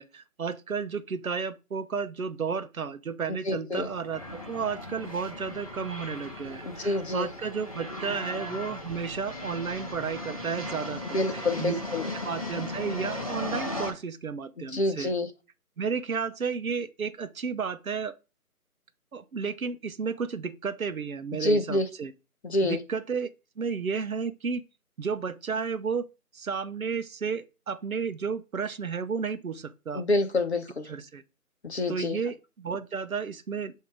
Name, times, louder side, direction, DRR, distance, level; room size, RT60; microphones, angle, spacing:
voice 1, 0.0-11.8 12.1-15.1 15.8-18.1 19.1-22.1 22.6-23.3 23.6-24.6 25.0-26.1 26.3-30.0 30.9-31.2 31.9-33.7, right 5 dB, 65° right, 0.7 m, -32 dB
voice 2, 3.4-3.9 6.6-7.3 11.0-12.1 14.6-15.3 21.4-21.9 22.4-22.8 29.9-30.9 31.6-32.2, left 2 dB, 45° left, 0.9 m, -27 dB
sound 1, 3.8-13.9, left 1 dB, 25° left, 0.7 m, -37 dB
7.5 x 2.8 x 4.9 m
figure-of-eight pair, 160°, 46 cm